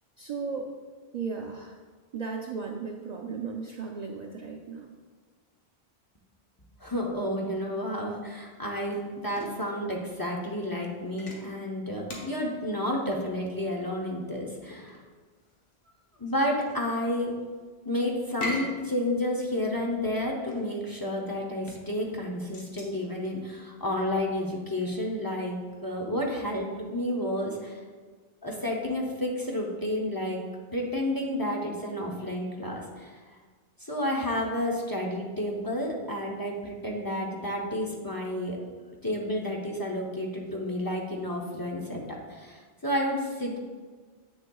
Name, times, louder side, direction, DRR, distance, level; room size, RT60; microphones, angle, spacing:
voice 1, 0.2-0.7 1.1-1.8 2.1-4.9, right 5 dB, 55° right, 1 dB, 0.5 m, -35 dB
voice 2, 6.8-15.0 16.2-17.3 17.8-27.8 28.4-30.4 30.7-33.2 33.8-38.6 39.0-43.6, left 1 dB, 25° left, -1 dB, 0.6 m, -31 dB
sound 1, 8.5-25.1, left 1 dB, 90° left, 1.3 m, -44 dB
8.0 x 6.3 x 2.3 m, 1.5 s
omnidirectional pair, 1.0 m